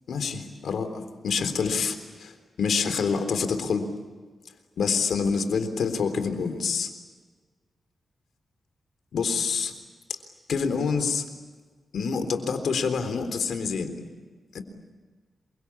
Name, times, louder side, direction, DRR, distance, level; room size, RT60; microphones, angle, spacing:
voice 1, 0.1-3.9 4.8-6.9 9.1-9.7 10.5-11.2 11.9-14.0 14.5-14.6, left 5 dB, 80° left, 8 dB, 3.7 m, -27 dB
28.0 x 24.0 x 8.6 m, 1.4 s
wide cardioid pair, 100°, 0 cm